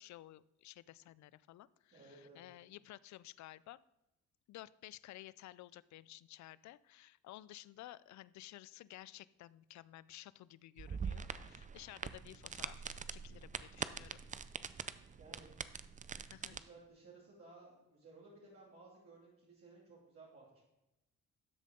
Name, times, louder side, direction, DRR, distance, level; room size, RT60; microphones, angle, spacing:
voice 1, 0.0-3.8 4.5-14.2 16.3-16.6, left 15 dB, 70° left, 20 dB, 0.4 m, -54 dB
voice 2, 1.9-2.4 15.2-15.5 16.5-20.6, right 3 dB, 50° right, -6 dB, 2.8 m, -58 dB
sound 1, 10.8-16.6, right 6 dB, 25° right, 0.5 m, -44 dB
13.0 x 7.6 x 3.8 m, 0.94 s
cardioid pair, 90°, 30 cm